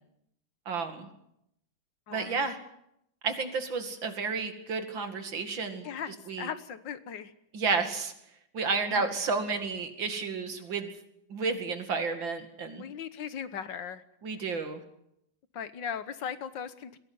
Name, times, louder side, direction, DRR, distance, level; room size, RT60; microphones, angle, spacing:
voice 1, 0.7-1.1 2.1-2.6 3.2-5.9 6.3-6.5 7.5-8.1 8.5-10.9 11.3-12.8 14.2-14.8, right 4 dB, 90° right, 7 dB, 3.0 m, -31 dB
voice 2, 2.1-2.4 5.8-7.3 8.9-9.1 12.8-14.0 15.5-17.0, left 7 dB, 75° left, 13 dB, 1.8 m, -38 dB
21.5 x 17.0 x 9.6 m, 0.79 s
omnidirectional pair, 2.0 m